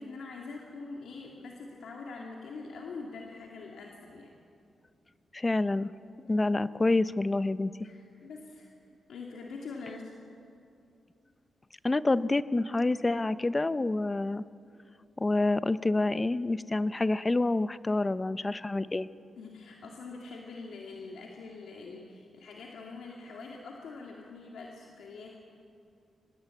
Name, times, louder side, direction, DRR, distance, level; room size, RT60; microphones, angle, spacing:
voice 1, 0.0-4.3 7.8-8.7 9.1-10.1 19.4-25.4, left 4 dB, 85° left, 0 dB, 2.2 m, -44 dB
voice 2, 5.3-5.9 6.3-7.7 11.8-14.4 15.2-19.1, left 2 dB, 25° left, 15 dB, 0.7 m, -27 dB
24.5 x 20.0 x 8.4 m, 2.5 s
cardioid pair, 75°, 0 cm